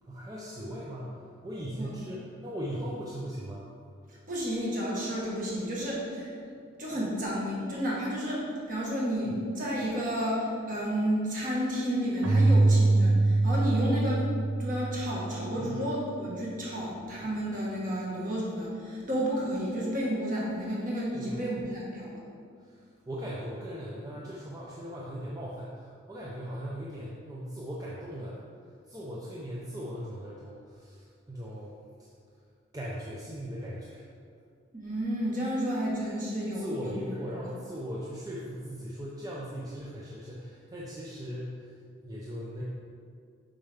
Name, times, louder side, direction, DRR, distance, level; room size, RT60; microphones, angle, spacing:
voice 1, 0.0-1.1 1.4-3.7 15.5-15.9 21.1-21.6 22.6-28.4 28.9-31.8 32.7-34.0 36.5-41.7 42.0-42.6, equal, 20° right, -6 dB, 0.5 m, -39 dB
voice 2, 4.1-6.3 6.8-22.2 34.7-37.0 37.3-37.4, equal, 40° right, -5 dB, 1.5 m, -31 dB
Keyboard (musical), 12.2-15.8, right 2 dB, 85° right, 0.9 m, -24 dB
6.8 x 5.4 x 3.5 m, 2.2 s
head